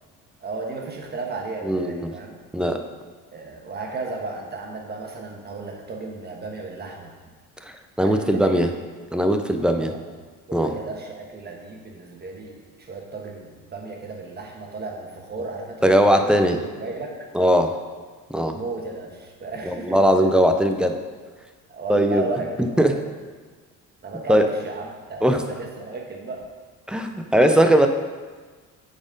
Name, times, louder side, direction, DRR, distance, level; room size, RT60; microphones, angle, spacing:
voice 1, 0.4-2.3 3.3-7.1 8.0-8.7 9.8-10.1 10.5-16.3 16.7-17.3 18.5-20.0 21.7-23.1 24.0-26.4, right 3 dB, 25° right, 1 dB, 1.2 m, -34 dB
voice 2, 1.6-2.1 2.5-2.8 7.6-8.7 9.1-9.9 10.5-10.7 15.8-16.6 17.3-17.8 18.3-18.6 19.6-21.0 21.9-22.2 22.6-23.0 24.3-24.5 25.2-25.4 26.9-27.9, equal, 5° right, 6 dB, 0.3 m, -19 dB
8.8 x 4.2 x 5.1 m, 1.5 s
cardioid pair, 135°, 36 cm